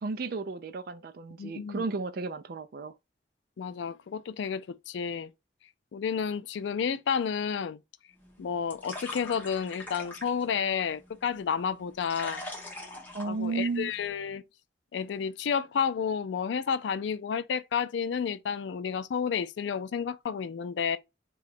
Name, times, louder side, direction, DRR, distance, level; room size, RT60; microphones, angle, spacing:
voice 1, 0.0-2.9 13.1-13.9, right 4 dB, 55° right, 0.4 m, -33 dB
voice 2, 1.4-1.8 3.6-5.3 5.9-7.8 8.4-12.4 13.2-14.4 14.9-21.0, left 7 dB, 80° left, 0.4 m, -31 dB
sound 1, 8.1-14.1, left 2 dB, 10° left, 0.9 m, -44 dB
2.9 x 2.3 x 4.1 m
head